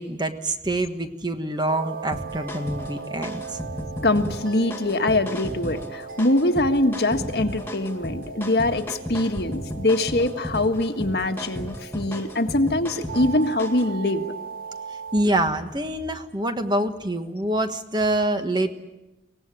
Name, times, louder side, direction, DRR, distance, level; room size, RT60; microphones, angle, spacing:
voice 1, 0.0-3.6 15.1-18.7, right 1 dB, 25° right, 7 dB, 1.4 m, -25 dB
sound 1, 1.7-15.2, right 5 dB, 50° right, 2.1 m, -39 dB
sound 2, 2.1-13.9, left 1 dB, 10° left, 2.2 m, -35 dB
voice 2, 4.0-14.3, left 2 dB, 65° left, 6 dB, 1.6 m, -23 dB
24.0 x 18.5 x 10.0 m, 1.0 s
head